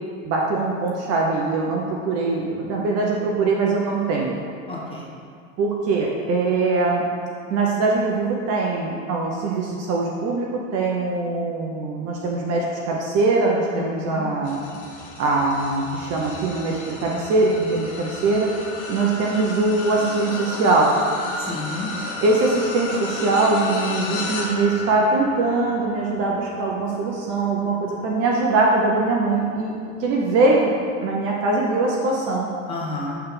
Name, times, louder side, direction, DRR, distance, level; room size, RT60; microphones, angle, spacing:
voice 1, 0.2-4.3 5.6-7.0 7.5-14.6 15.2-18.5 18.9-21.0 22.2-29.7 30.0-30.7 31.0-32.5, right 3 dB, 40° right, -2 dB, 0.7 m, -22 dB
voice 2, 4.7-5.1 13.7-14.3 21.4-21.9 32.7-33.2, left 2 dB, 15° left, -5 dB, 1.3 m, -31 dB
sound 1, 14.4-29.9 30.5-30.7 32.0-32.1, left 2 dB, 35° left, 1.1 m, -34 dB
7.7 x 3.4 x 3.8 m, 2.2 s
hypercardioid pair, 110°, 41 cm